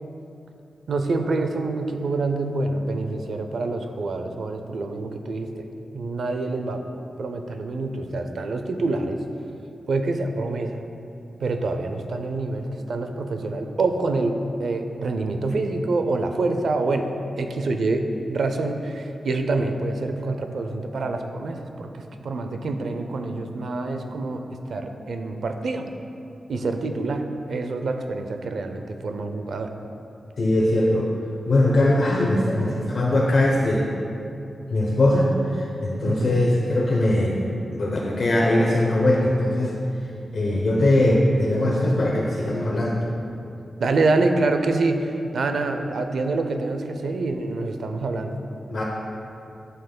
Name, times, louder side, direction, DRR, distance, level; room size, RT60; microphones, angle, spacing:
voice 1, 0.9-5.7 5.9-6.8 7.2-9.2 9.9-10.9 11.4-17.1 17.4-24.4 24.7-25.9 26.5-29.7 36.0-36.5 43.8-48.4, right 3 dB, 85° right, 6 dB, 0.4 m, -26 dB
voice 2, 30.4-31.1 31.5-33.9 34.7-37.4 37.7-39.7 40.3-42.9 48.7-48.8, left 1 dB, 65° left, -3 dB, 0.8 m, -21 dB
11.0 x 5.4 x 2.2 m, 2.7 s
wide cardioid pair, 105°, 0 cm